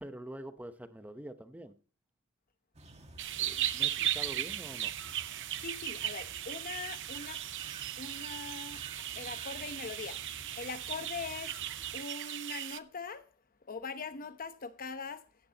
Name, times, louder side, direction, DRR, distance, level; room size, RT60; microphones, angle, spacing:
voice 1, 0.0-1.8 3.3-4.9, right 1 dB, 5° right, 0.9 m, -45 dB
sound 1, 2.7-12.0, right 2 dB, 30° right, 2.1 m, -53 dB
sound 2, 3.2-12.8, right 11 dB, 60° right, 0.7 m, -37 dB
voice 2, 5.6-7.4 8.0-8.8 9.1-10.2 10.6-11.6 11.9-13.3 13.7-15.2, left 4 dB, 40° left, 0.9 m, -41 dB
16.0 x 11.0 x 2.9 m
head